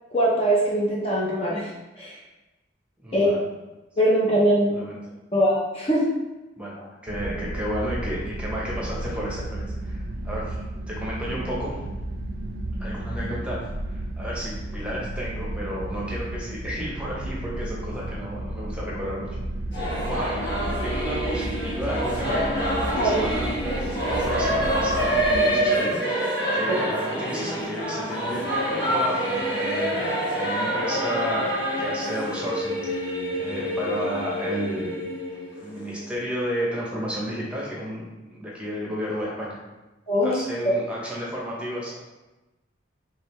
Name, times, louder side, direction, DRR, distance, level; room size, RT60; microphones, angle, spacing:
voice 1, 0.1-1.7 2.0-2.2 3.1-3.4 4.0-4.8 5.3-6.1 22.9-23.2 26.7-26.8 40.1-40.4 40.6-40.7, equal, 30° left, -5 dB, 0.6 m, -22 dB
voice 2, 3.0-3.4 4.7-5.2 6.6-10.5 10.9-11.8 12.8-13.6 13.9-19.3 20.0-20.5 20.8-22.5 22.8-26.0 26.5-31.5 31.8-35.0 35.5-39.6 40.2-42.0, equal, 5° right, -5 dB, 0.8 m, -32 dB
sound 1, 7.1-25.4, right 1 dB, 50° right, 0.3 m, -33 dB
Singing / Musical instrument, 19.7-36.0, equal, 60° left, 1.2 m, -27 dB
3.7 x 3.3 x 3.1 m, 1.1 s
head